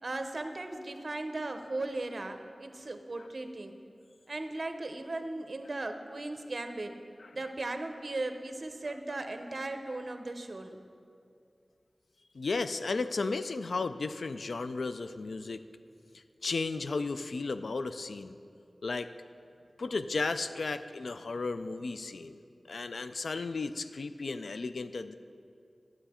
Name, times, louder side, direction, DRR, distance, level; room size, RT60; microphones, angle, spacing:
voice 1, 0.0-3.7 4.3-6.9 7.3-10.8, right 2 dB, 55° right, 7 dB, 0.6 m, -37 dB
voice 2, 12.3-15.6 16.4-18.4 18.8-19.1 19.8-22.4 22.7-25.1, left 3 dB, 90° left, 11 dB, 0.3 m, -34 dB
10.5 x 7.8 x 4.3 m, 2.4 s
wide cardioid pair, 70°, 0 cm